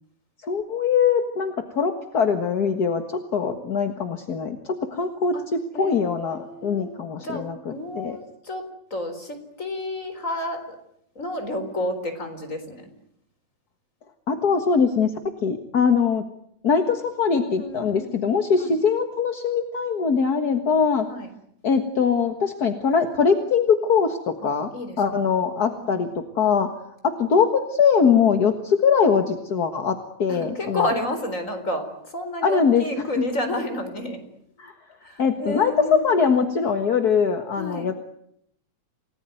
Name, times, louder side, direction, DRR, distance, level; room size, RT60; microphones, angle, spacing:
voice 1, 0.4-8.2 14.3-15.1 15.4-16.2 16.6-21.1 21.6-24.7 25.0-26.7 27.0-30.9 32.4-32.8 33.2-33.3 34.6-34.7 35.2-37.9, left 6 dB, 40° left, 6 dB, 1.6 m, -22 dB
voice 2, 5.7-8.7 8.9-10.8 11.2-12.9 17.6-18.2 18.6-18.8 21.1-21.3 24.4-25.3 25.7-26.1 30.3-34.2 35.0-36.1 37.5-37.9, left 1 dB, 25° left, 6 dB, 4.4 m, -31 dB
29.5 x 19.0 x 9.3 m, 0.74 s
omnidirectional pair, 3.4 m